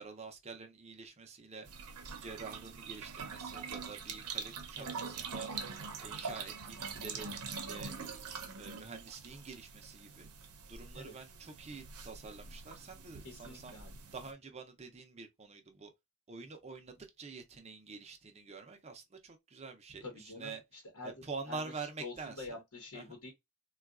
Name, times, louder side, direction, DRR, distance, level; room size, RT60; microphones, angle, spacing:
voice 1, 0.0-1.7 2.2-7.9 8.5-10.3 10.7-13.8 14.1-15.9 16.3-20.6 21.0-22.6 22.9-23.1, right 4 dB, 30° right, 0.5 m, -47 dB
sound 1, 1.7-14.3, right 5 dB, 80° right, 0.7 m, -44 dB
voice 2, 13.2-14.0 20.0-21.6 22.0-23.3, left 3 dB, 75° left, 1.0 m, -47 dB
3.7 x 2.3 x 2.3 m
head